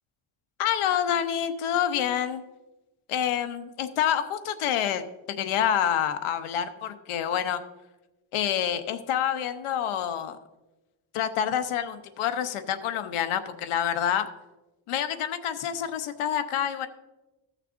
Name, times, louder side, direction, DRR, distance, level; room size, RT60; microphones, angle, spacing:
voice 1, 0.6-2.4 3.1-5.0 5.4-7.6 8.3-10.4 11.1-14.3 14.9-16.9, left 9 dB, 80° left, 9 dB, 0.9 m, -27 dB
15.5 x 6.5 x 2.6 m, 1.1 s
cardioid pair, 130°, 49 cm